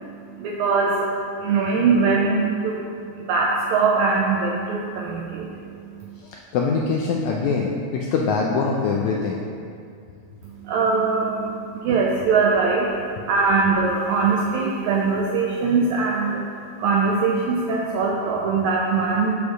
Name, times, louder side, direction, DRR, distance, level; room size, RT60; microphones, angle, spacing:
voice 1, 0.4-2.9 3.2-6.2 10.4-16.4 16.8-19.3, right 4 dB, 85° right, -1 dB, 1.7 m, -22 dB
voice 2, 6.2-9.4, left 4 dB, 85° left, -1 dB, 1.6 m, -23 dB
6.4 x 5.1 x 6.1 m, 2.4 s
omnidirectional pair, 3.9 m